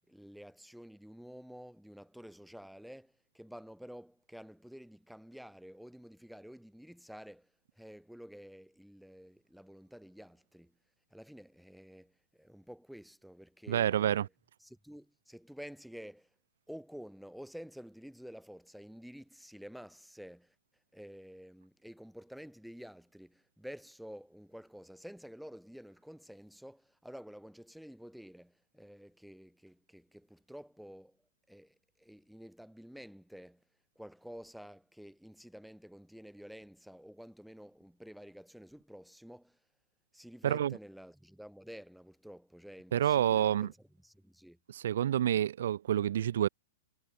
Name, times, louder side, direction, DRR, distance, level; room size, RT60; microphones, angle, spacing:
voice 1, 0.1-10.8 11.1-14.3 14.6-16.3 16.7-20.6 20.9-31.2 31.5-33.6 34.0-39.6 40.1-44.6, equal, ahead, 3.4 m, -50 dB
voice 2, 13.7-14.3 40.4-40.7 42.9-43.7 44.7-46.5, right 10 dB, 65° right, 1.3 m, -28 dB
figure-of-eight pair, 110°, 0 cm